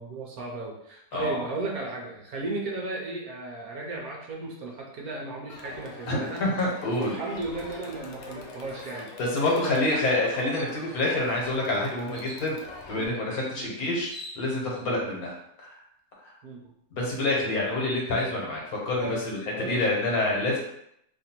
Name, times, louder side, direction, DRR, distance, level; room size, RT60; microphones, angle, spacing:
voice 1, 0.0-6.4 6.9-9.1 9.5-10.1 12.9-13.1 13.5-13.7 14.9-15.1 16.4-16.7 19.0-19.2 19.5-19.8, right 2 dB, 65° right, -1 dB, 1.1 m, -35 dB
voice 2, 1.1-1.4 6.1-7.2 9.2-12.6 12.9-15.7 16.9-20.6, left 2 dB, 65° left, -3 dB, 1.4 m, -27 dB
Crowd, 5.5-13.1, left 3 dB, 85° left, 0.6 m, -44 dB
sound 1, 9.5-9.7 10.1-10.2 10.5-11.1 12.1-12.5 13.6-13.7 13.9-14.8, left 1 dB, 15° left, 0.5 m, -45 dB
3.0 x 2.5 x 4.3 m, 0.75 s
omnidirectional pair, 1.8 m